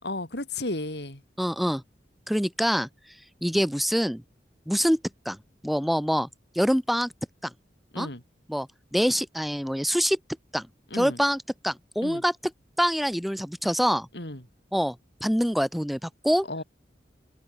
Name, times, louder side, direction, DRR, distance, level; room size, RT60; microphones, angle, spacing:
voice 1, 0.0-1.2 7.9-8.2 10.9-11.2 12.0-12.2 14.1-14.4 16.5-16.6, left 2 dB, 70° left, 5.3 m, -33 dB
voice 2, 1.4-1.8 2.3-2.9 3.4-4.2 4.7-5.0 5.3-5.4 5.6-6.3 6.6-7.1 7.4-7.5 8.0-8.1 8.5-10.2 10.5-10.7 10.9-12.3 12.8-14.1 14.7-16.5, equal, ahead, 7.0 m, -25 dB
head